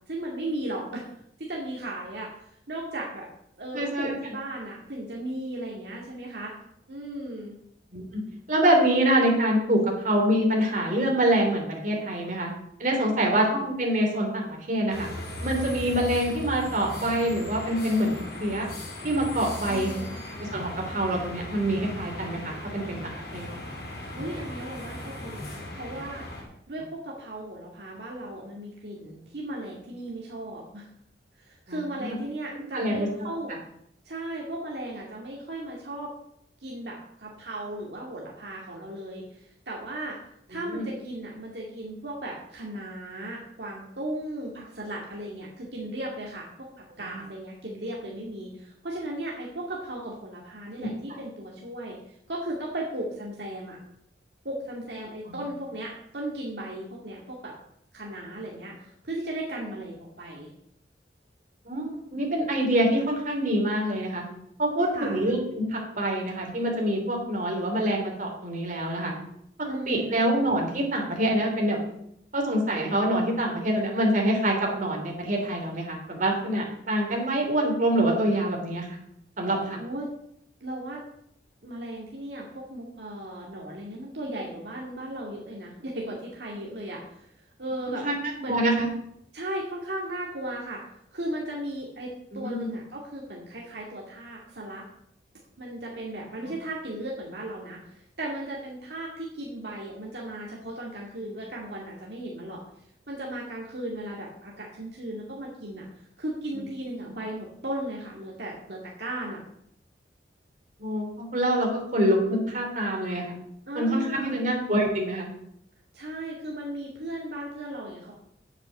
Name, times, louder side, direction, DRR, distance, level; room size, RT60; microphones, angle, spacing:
voice 1, 0.1-1.1 1.4-2.3 2.7-3.3 3.6-6.5 6.9-7.6 19.7-20.2 24.2-26.3 26.7-30.9 31.4-33.5 34.0-36.1 36.6-40.2 40.5-53.8 54.4-57.5 57.9-60.5 64.9-65.2 69.6-70.1 79.8-80.1 80.6-81.0 81.6-87.3 87.6-88.1 88.4-88.6 89.3-90.8 91.1-94.8 95.6-102.6 103.1-109.4 113.7-114.5 115.9-118.1, right 1 dB, 65° right, -3 dB, 2.2 m, -36 dB
voice 2, 3.7-4.1 7.9-8.0 8.5-12.5 12.8-15.1 15.4-18.7 19.0-19.9 20.4-23.5 31.7-32.2 32.7-33.3 40.7-40.8 50.8-50.9 55.3-55.4 61.6-64.2 64.6-69.1 69.9-71.8 72.3-79.0 79.4-79.8 87.9-88.9 92.3-92.7 110.8-113.3 113.7-115.3, right 1 dB, 45° right, 0 dB, 3.3 m, -25 dB
sound 1, 14.9-26.4, left 1 dB, 60° left, 4.9 m, -38 dB
8.9 x 7.9 x 7.9 m, 0.75 s
head